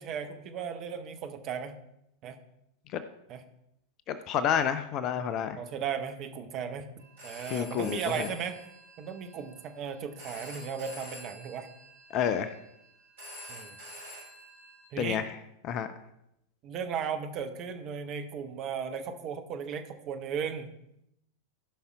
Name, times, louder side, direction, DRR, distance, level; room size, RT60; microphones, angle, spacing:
voice 1, 0.0-1.8 2.2-2.4 3.3-3.4 5.6-6.9 7.2-8.6 9.0-11.7 13.5-13.8 14.9-15.2 16.6-20.7, right 7 dB, 35° right, 7 dB, 1.1 m, -36 dB
voice 2, 4.1-5.6 7.5-8.3 12.1-12.5 15.0-15.3 15.6-15.9, left 8 dB, 35° left, 11 dB, 0.6 m, -29 dB
Telephone, 7.0-14.8, equal, 65° right, 4.3 m, -48 dB
15.0 x 5.7 x 4.7 m, 0.81 s
figure-of-eight pair, 90°, 0 cm